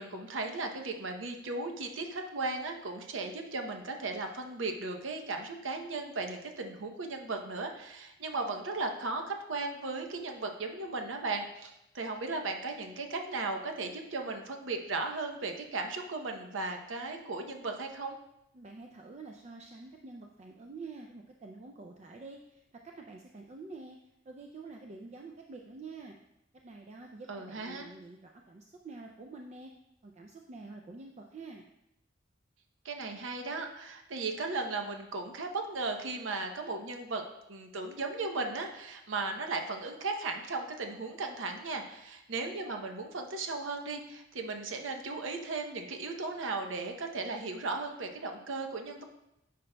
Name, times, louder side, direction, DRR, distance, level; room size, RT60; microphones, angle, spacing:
voice 1, 0.0-18.2 27.3-27.9 32.8-37.2 37.5-49.0, right 3 dB, 75° right, 4 dB, 0.7 m, -36 dB
voice 2, 18.5-24.0 24.3-26.2 26.5-29.7 30.0-31.6, right 3 dB, 35° right, 2 dB, 0.4 m, -47 dB
9.9 x 5.1 x 2.2 m, 0.86 s
head